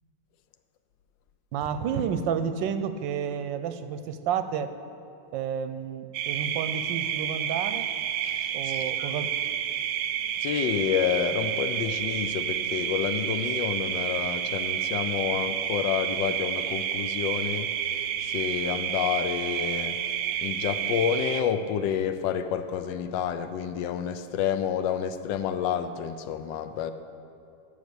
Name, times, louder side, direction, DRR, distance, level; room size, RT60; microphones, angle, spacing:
voice 1, 1.5-4.7 5.3-7.9 8.5-9.4, right 7 dB, 90° right, 11 dB, 1.3 m, -30 dB
sound 1, 6.1-21.4, right 10 dB, 65° right, 0.9 m, -30 dB
voice 2, 8.3-9.1 10.4-17.7 18.2-20.0 20.4-26.9, left 8 dB, 80° left, 10 dB, 1.3 m, -29 dB
11.5 x 7.2 x 6.8 m, 2.6 s
omnidirectional pair, 2.0 m